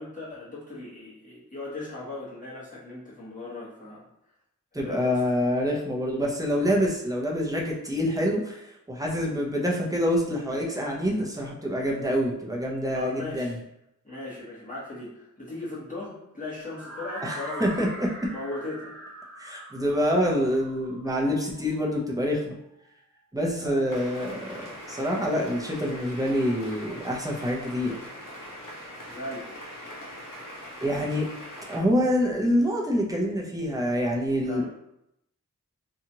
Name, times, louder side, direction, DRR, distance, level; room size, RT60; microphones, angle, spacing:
voice 1, 0.0-4.0 4.7-5.2 12.9-13.6 14.0-17.9 18.3-19.0 23.6-23.9 29.1-29.5 34.4-34.7, left 2 dB, 25° left, -10 dB, 1.1 m, -38 dB
voice 2, 4.7-13.6 17.2-18.1 19.4-22.6 23.3-28.0 30.3-31.3 31.7-34.7, equal, 10° right, -2 dB, 0.6 m, -26 dB
sound 1, 16.6-22.5, right 1 dB, 50° right, 1.0 m, -42 dB
sound 2, 23.9-31.8, equal, 75° left, 0.8 m, -41 dB
2.8 x 2.3 x 2.8 m, 0.81 s
wide cardioid pair, 60°, 32 cm